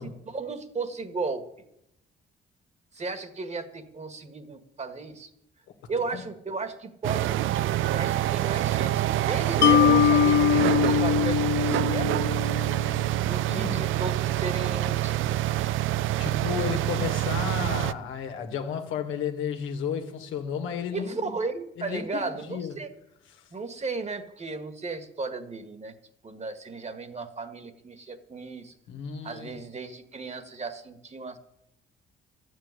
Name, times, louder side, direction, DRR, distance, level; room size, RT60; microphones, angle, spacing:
voice 1, 0.0-1.4 2.9-5.3 5.9-7.4 7.8-12.1 13.1-15.4 17.9-18.0 20.9-22.9 23.5-25.9 26.2-28.7 29.2-31.4, right 4 dB, 35° right, 1.7 m, -35 dB
sound 1, 7.0-17.9, right 14 dB, 80° right, 0.5 m, -26 dB
Mallet percussion, 9.6-12.9, left 9 dB, 60° left, 0.7 m, -22 dB
voice 2, 13.5-13.8 16.2-21.3 21.8-22.7 28.9-29.5, left 8 dB, 90° left, 1.9 m, -33 dB
12.5 x 7.9 x 9.7 m
cardioid pair, 90°, 20 cm